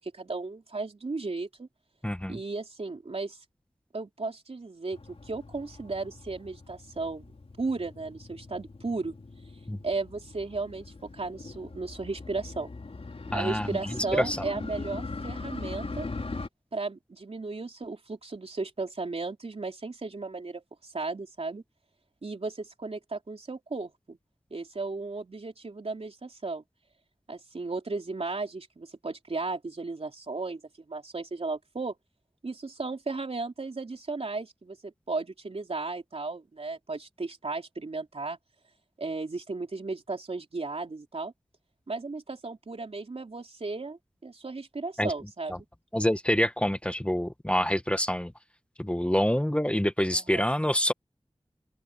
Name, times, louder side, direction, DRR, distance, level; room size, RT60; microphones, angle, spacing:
voice 1, 0.0-1.7 2.3-3.4 3.9-7.3 7.6-9.2 9.8-12.7 13.3-16.1 16.7-21.6 22.2-24.2 24.5-26.6 27.3-30.6 30.9-32.0 32.4-38.4 39.0-41.3 41.9-45.6 50.1-50.5, right 3 dB, 75° right, 3.8 m, -35 dB
voice 2, 2.0-2.4 9.7-9.8 13.3-14.4 45.0-45.1 45.9-48.3 48.8-50.9, equal, 10° left, 1.3 m, -26 dB
Motorcycle, 4.9-16.5, left 3 dB, 75° left, 4.9 m, -41 dB
open air
wide cardioid pair, 60°, 10 cm